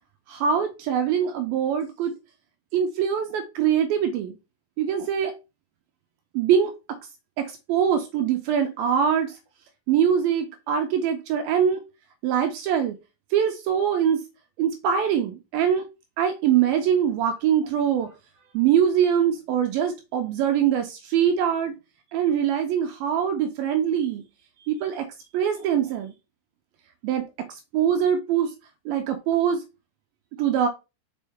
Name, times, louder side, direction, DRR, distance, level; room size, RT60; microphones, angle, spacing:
voice 1, 0.3-2.2 2.7-4.4 4.8-5.3 6.3-6.7 7.4-9.4 9.9-11.8 12.2-13.0 13.3-14.2 14.6-15.8 16.2-18.1 18.5-21.8 22.1-24.2 24.7-25.1 25.3-26.1 27.0-28.5 28.9-29.6 30.4-30.7, right 8 dB, 80° right, 2.1 m, -23 dB
6.3 x 4.6 x 3.5 m
omnidirectional pair, 5.0 m